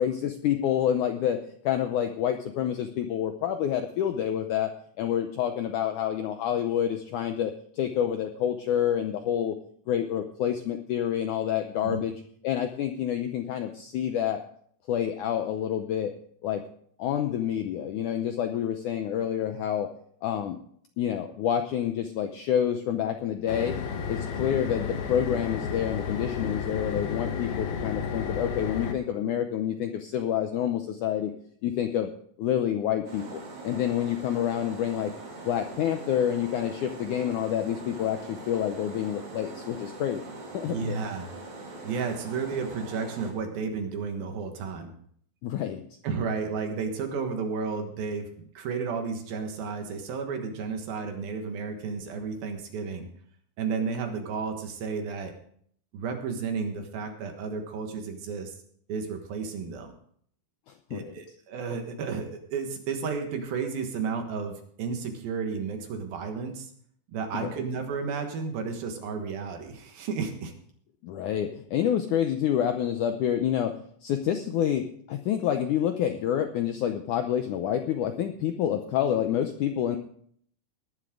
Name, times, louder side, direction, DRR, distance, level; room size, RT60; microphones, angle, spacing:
voice 1, 0.0-1.4 1.6-4.7 5.0-9.5 9.9-12.1 12.4-14.4 14.9-16.1 16.4-16.6 17.0-19.9 20.2-20.6 21.0-23.8 24.1-31.3 31.6-32.1 32.4-35.1 35.4-40.2 40.5-41.0 45.4-45.8 60.9-61.1 67.3-67.5 71.0-73.7 74.0-80.0, left 10 dB, 85° left, 6 dB, 1.8 m, -28 dB
sound 1, 23.5-28.9, left 6 dB, 70° left, 3.1 m, -32 dB
sound 2, 33.1-43.3, right 2 dB, 50° right, 4.0 m, -42 dB
voice 2, 40.6-41.3 41.8-44.9 46.0-53.1 53.6-55.3 55.9-58.6 58.9-59.9 60.9-66.7 67.1-70.5, right 5 dB, 70° right, 4 dB, 3.2 m, -32 dB
18.5 x 11.0 x 3.8 m, 0.62 s
omnidirectional pair, 4.5 m